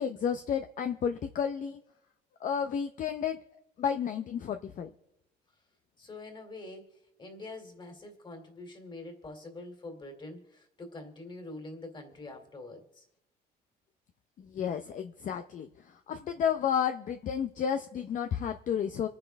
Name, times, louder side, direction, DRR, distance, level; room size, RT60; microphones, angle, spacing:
voice 1, 0.0-1.8 2.4-3.4 3.8-4.9 14.4-19.1, left 8 dB, 50° left, 7 dB, 0.8 m, -32 dB
voice 2, 6.0-13.0, left 2 dB, 30° left, 5 dB, 2.8 m, -45 dB
26.0 x 9.5 x 3.5 m, 0.85 s
cardioid pair, 110°, 17 cm